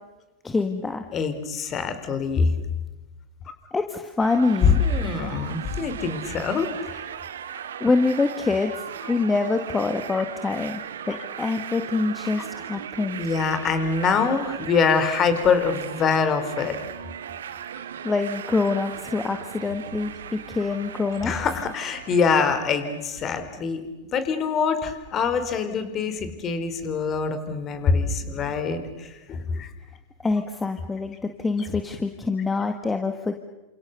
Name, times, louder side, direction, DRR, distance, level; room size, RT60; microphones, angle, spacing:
voice 1, 0.4-1.0 3.7-4.8 7.8-13.2 18.0-21.3 30.2-33.3, left 3 dB, 15° left, 7 dB, 1.8 m, -25 dB
voice 2, 1.1-2.5 4.6-7.0 11.1-11.2 12.3-12.4 13.2-16.8 21.2-23.8 24.1-29.7, left 5 dB, 30° left, 10 dB, 4.3 m, -24 dB
sound 1, 4.2-23.3, right 9 dB, 75° right, 1.8 m, -37 dB
29.0 x 27.5 x 6.8 m, 1.1 s
hypercardioid pair, 100°, 0 cm